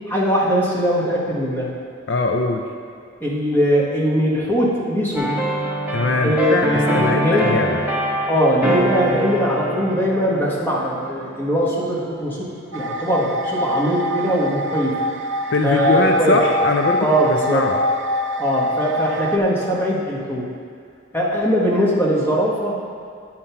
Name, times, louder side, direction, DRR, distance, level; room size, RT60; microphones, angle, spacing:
voice 1, 0.1-1.7 3.2-5.3 6.2-6.5 6.8-7.6 8.3-12.5 12.7-15.0 15.6-16.4 17.0-17.6 18.4-20.5 21.1-22.8, equal, 10° left, -5 dB, 1.2 m, -20 dB
voice 2, 2.1-2.6 5.9-7.8 15.5-17.8, left 3 dB, 60° left, 3 dB, 0.5 m, -21 dB
sound 1, 5.1-11.7 12.0-12.3, equal, 10° right, 0.8 m, -24 dB
sound 2, 12.7-19.4, equal, 70° right, 0.6 m, -25 dB
8.8 x 4.4 x 5.7 m, 2.3 s
head